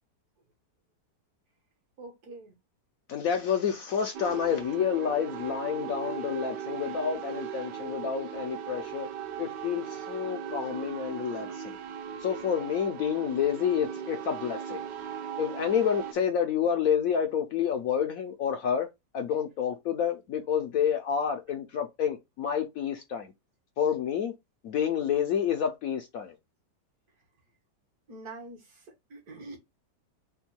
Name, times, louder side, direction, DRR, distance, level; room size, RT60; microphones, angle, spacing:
voice 1, 2.0-2.6 28.1-29.6, right 2 dB, 60° right, 1.6 m, -45 dB
voice 2, 3.1-9.1 9.4-11.8 12.2-14.8 15.4-18.9 19.1-23.3 23.8-24.3 24.6-26.3, left 8 dB, 70° left, 0.9 m, -29 dB
sound 1, 4.1-16.1, right 8 dB, 80° right, 1.2 m, -38 dB
3.6 x 2.3 x 4.3 m
omnidirectional pair, 1.9 m